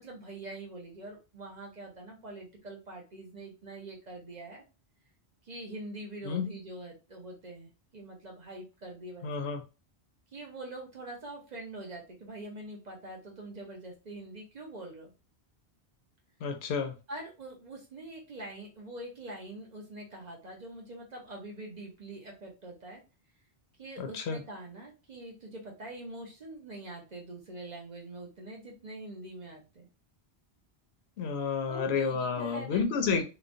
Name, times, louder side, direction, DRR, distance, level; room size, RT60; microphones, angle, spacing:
voice 1, 0.0-4.6 5.4-9.5 10.3-15.1 17.1-23.0 23.8-29.9 31.7-33.2, right 2 dB, 45° right, 0.8 m, -44 dB
voice 2, 6.2-6.6 9.2-9.6 16.4-16.9 24.0-24.4 31.2-33.2, left 5 dB, 80° left, 0.8 m, -30 dB
3.0 x 2.1 x 2.5 m
omnidirectional pair, 1.1 m